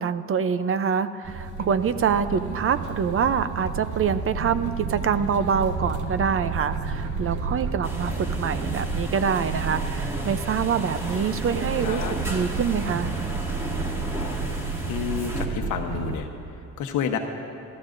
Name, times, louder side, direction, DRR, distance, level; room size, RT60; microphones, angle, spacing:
voice 1, 0.0-12.0 12.3-13.1, right 7 dB, 45° right, 12 dB, 0.6 m, -25 dB
sound 1, 1.2-16.2, right 4 dB, 75° right, 1.1 m, -31 dB
sound 2, 7.8-15.5, equal, 10° right, 1.9 m, -35 dB
voice 2, 11.8-12.1 14.9-16.3 16.8-17.2, left 7 dB, 80° left, 5 dB, 1.1 m, -29 dB
25.5 x 14.5 x 2.6 m, 2.6 s
cardioid pair, 90°, 30 cm